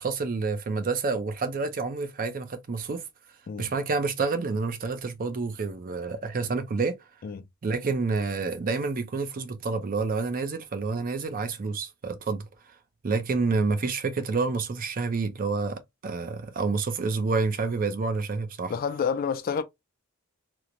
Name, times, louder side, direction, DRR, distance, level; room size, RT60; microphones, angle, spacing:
voice 1, 0.0-3.1 3.6-7.0 7.6-12.5 13.0-18.7, right 4 dB, 40° right, 0.4 m, -28 dB
voice 2, 18.7-19.6, left 6 dB, 40° left, 0.3 m, -28 dB
2.9 x 2.0 x 2.4 m
head